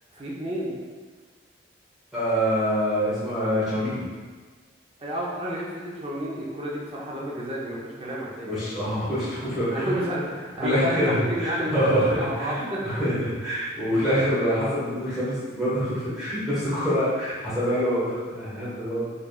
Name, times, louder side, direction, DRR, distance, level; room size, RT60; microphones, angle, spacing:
voice 1, 0.1-0.8 5.0-8.9 9.6-12.9, equal, 30° right, -5 dB, 0.7 m, -31 dB
voice 2, 2.1-4.1 8.4-9.9 10.6-19.1, equal, ahead, -13 dB, 1.3 m, -25 dB
4.8 x 3.2 x 2.4 m, 1.5 s
head